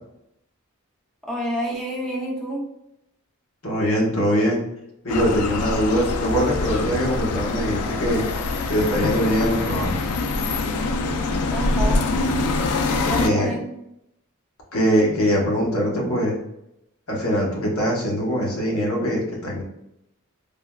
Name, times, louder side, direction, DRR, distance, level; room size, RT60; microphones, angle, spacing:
voice 1, 1.2-2.7 11.5-12.1 13.0-13.8, equal, ahead, -3 dB, 0.5 m, -28 dB
voice 2, 3.6-4.6 5.0-8.2 8.7-10.1 13.2-13.5 14.7-16.4 17.1-19.6, equal, 70° left, -3 dB, 0.9 m, -22 dB
sound 1, 5.1-13.3, left 3 dB, 85° left, 0.3 m, -24 dB
3.4 x 2.1 x 2.2 m, 0.82 s
head